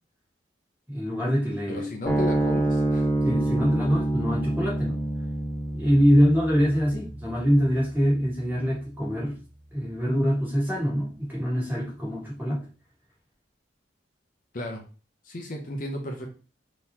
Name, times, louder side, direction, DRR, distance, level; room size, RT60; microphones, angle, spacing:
voice 1, 0.9-1.9 3.2-5.0 5.7-9.4 9.7-12.6, equal, 10° right, -5 dB, 1.5 m, -24 dB
voice 2, 1.7-3.1 14.5-14.8 15.2-16.3, left 1 dB, 45° left, 2 dB, 0.7 m, -34 dB
sound 1, 2.0-8.7, right 1 dB, 10° left, 1.4 m, -27 dB
3.8 x 3.0 x 2.8 m, 0.35 s
head